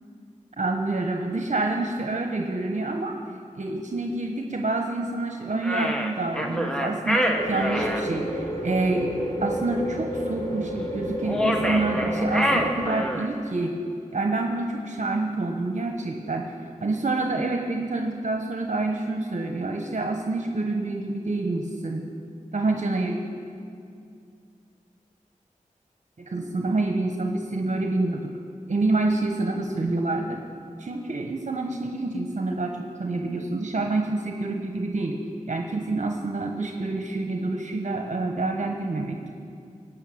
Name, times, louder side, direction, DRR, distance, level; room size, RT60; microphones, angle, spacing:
voice 1, 0.6-3.2 3.5-9.1 9.4-13.8 14.1-22.0 22.5-23.2 26.3-28.3 28.7-30.4 30.8-35.2 35.5-39.3, right 2 dB, 60° right, 2 dB, 1.1 m, -27 dB
sound 1, 5.6-8.0 11.2-13.4, equal, 5° left, 1.5 m, -26 dB
sound 2, 7.4-12.7, equal, 25° left, 3.6 m, -30 dB
17.5 x 6.5 x 9.2 m, 2.4 s
cardioid pair, 50°, 14 cm